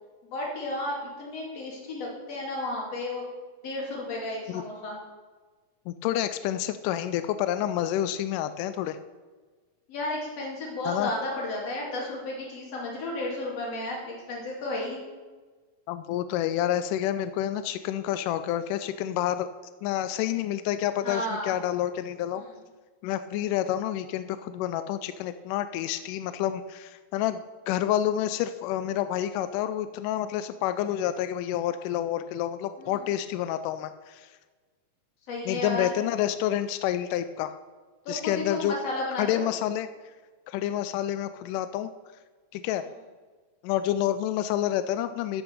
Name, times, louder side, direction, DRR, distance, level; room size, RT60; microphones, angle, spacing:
voice 1, 0.3-3.2 3.6-5.0 9.9-15.0 21.0-21.5 22.3-22.5 32.8-33.1 35.3-35.9 38.0-39.4, left 2 dB, 45° left, -2 dB, 3.3 m, -33 dB
voice 2, 5.9-9.0 10.9-11.1 15.9-19.5 19.8-22.4 23.0-34.3 35.5-37.6 38.1-38.7 39.2-39.9 40.5-41.9 42.5-42.8 43.6-45.4, left 11 dB, 90° left, 11 dB, 1.8 m, -28 dB
12.5 x 6.0 x 6.6 m, 1.4 s
omnidirectional pair, 4.2 m